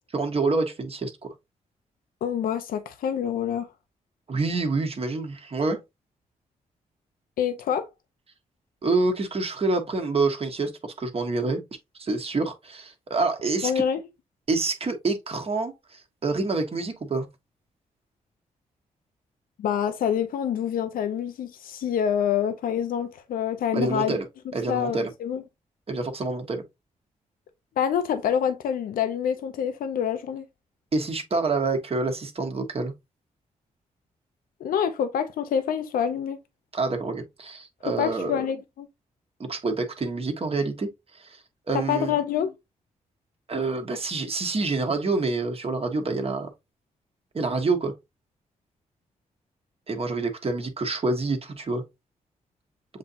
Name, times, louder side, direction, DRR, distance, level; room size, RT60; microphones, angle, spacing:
voice 1, 0.1-1.3 4.3-5.8 8.8-11.6 12.0-13.7 14.5-17.3 23.7-24.3 24.5-25.1 25.9-26.6 30.9-32.9 36.7-38.3 39.4-40.9 41.2-41.4 41.7-42.1 43.5-46.5 47.3-47.9 49.9-51.8, right 3 dB, 45° right, 1.3 m, -27 dB
voice 2, 2.2-3.7 7.4-7.9 13.6-14.0 19.6-24.2 24.7-25.4 27.8-30.4 34.6-36.4 37.8-38.9 41.7-42.5, left 8 dB, 80° left, 0.6 m, -26 dB
7.3 x 2.7 x 2.6 m
cardioid pair, 65°, 14 cm